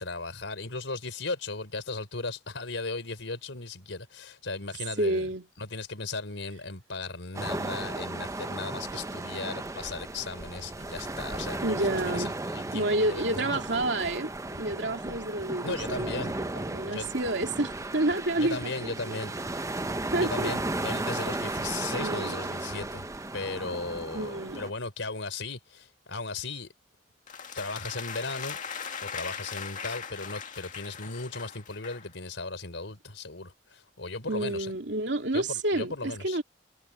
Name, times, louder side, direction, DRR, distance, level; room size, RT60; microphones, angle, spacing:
voice 1, 0.0-5.3 5.6-13.6 15.6-16.4 16.8-17.1 18.4-19.3 20.2-23.1 23.3-26.7 27.5-28.6 29.0-34.7 35.3-36.4, left 3 dB, 85° left, 4.2 m, -36 dB
voice 2, 5.0-5.5 11.6-12.3 12.7-14.3 14.6-19.2 20.1-20.5 22.0-22.3 23.7-23.8 24.1-24.6 34.3-36.4, right 1 dB, 70° right, 2.8 m, -29 dB
sound 1, 7.3-24.7, right 2 dB, 15° right, 0.8 m, -35 dB
sound 2, 10.6-18.7, left 1 dB, 70° left, 4.2 m, -53 dB
sound 3, 27.3-32.1, left 6 dB, 45° left, 2.1 m, -39 dB
head